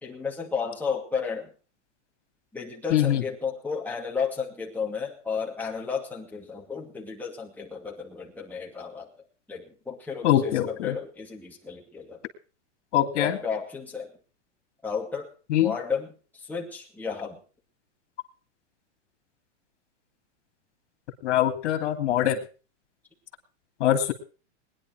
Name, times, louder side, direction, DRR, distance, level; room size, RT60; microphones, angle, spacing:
voice 1, 0.0-1.5 2.5-9.1 9.5-12.2 13.2-14.1 14.8-15.3 15.6-17.4, left 5 dB, 5° left, -3 dB, 2.5 m, -33 dB
voice 2, 2.9-3.2 10.2-11.0 12.9-13.4 15.5-15.7 21.2-22.4 23.8-24.1, left 12 dB, 65° left, 6 dB, 2.8 m, -23 dB
21.0 x 10.5 x 4.7 m, 0.36 s
supercardioid pair, 165°, 36 cm